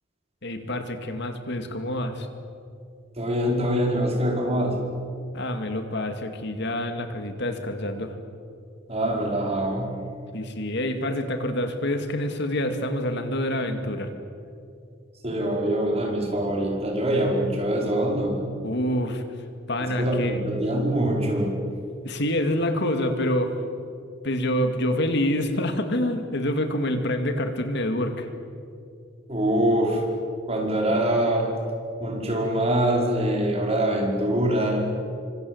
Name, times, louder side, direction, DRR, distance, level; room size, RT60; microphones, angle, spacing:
voice 1, 0.4-2.3 5.3-8.1 10.3-14.1 18.6-19.2 19.7-20.4 22.0-23.5 24.2-28.3, left 1 dB, 60° left, 7 dB, 2.4 m, -27 dB
voice 2, 3.2-4.8 8.9-9.9 15.2-18.4 19.8-21.6 29.3-30.0 30.5-31.5 32.0-34.8, right 1 dB, 30° right, 0 dB, 5.2 m, -24 dB
28.5 x 25.5 x 8.1 m, 2.5 s
head